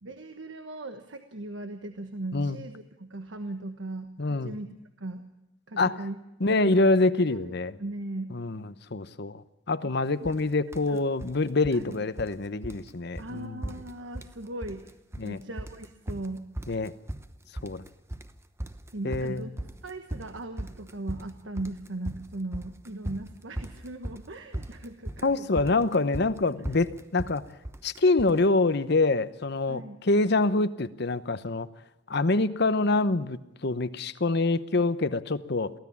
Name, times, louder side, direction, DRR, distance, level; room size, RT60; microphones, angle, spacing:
voice 1, 0.0-4.7 5.0-5.2 5.7-6.2 6.5-6.9 7.3-7.5 7.8-8.3 9.8-9.9 10.2-10.4 10.9-11.0 11.7-12.0 13.2-14.9 15.2-16.5 18.9-25.7 29.7-30.0 32.7-32.8, right 2 dB, 80° right, 7 dB, 1.3 m, -38 dB
voice 2, 4.2-4.6 5.8-6.0 6.4-7.7 8.3-8.6 8.9-9.4 9.7-13.6 15.2-15.4 16.7-16.9 17.6-17.8 19.0-19.4 25.2-27.4 27.8-31.7 32.1-35.7, left 3 dB, 60° left, 13 dB, 0.9 m, -25 dB
sound 1, 10.2-10.4 10.7-11.4 11.6-12.4 12.6-12.9 13.2-13.3 13.6-14.4 14.6-15.3 15.6-28.4, right 1 dB, 15° right, 0.9 m, -38 dB
23.5 x 16.0 x 7.2 m, 0.92 s
head